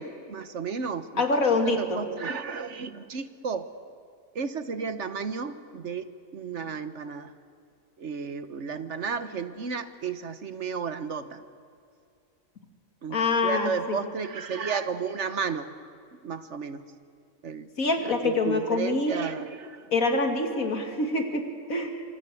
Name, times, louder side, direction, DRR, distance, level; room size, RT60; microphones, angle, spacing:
voice 1, 0.0-3.7 4.3-7.3 8.0-11.4 13.0-15.7 16.2-16.8 17.4-17.7 18.0-19.9 20.2-20.3, right 5 dB, 60° right, 11 dB, 1.4 m, -33 dB
voice 2, 1.2-2.0 13.1-14.0 17.8-19.2 19.9-22.0, left 3 dB, 80° left, 4 dB, 3.0 m, -25 dB
25.5 x 25.5 x 8.4 m, 2.3 s
omnidirectional pair, 1.4 m